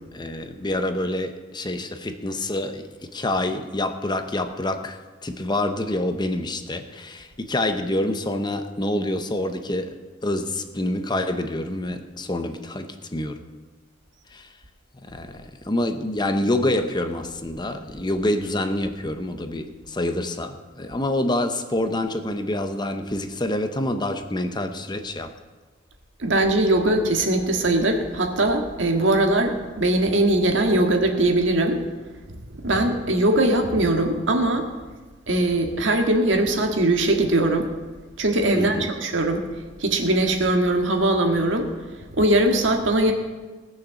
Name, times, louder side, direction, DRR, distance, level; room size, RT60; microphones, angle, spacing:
voice 1, 0.0-13.4 14.3-14.5 15.1-25.3 38.5-38.9, left 1 dB, 25° left, 8 dB, 0.8 m, -27 dB
voice 2, 26.2-31.8 32.3-34.7 35.3-37.7 38.2-39.5 39.8-41.7 42.1-43.1, right 1 dB, 75° right, 3 dB, 1.8 m, -21 dB
18.0 x 6.6 x 7.1 m, 1.3 s
head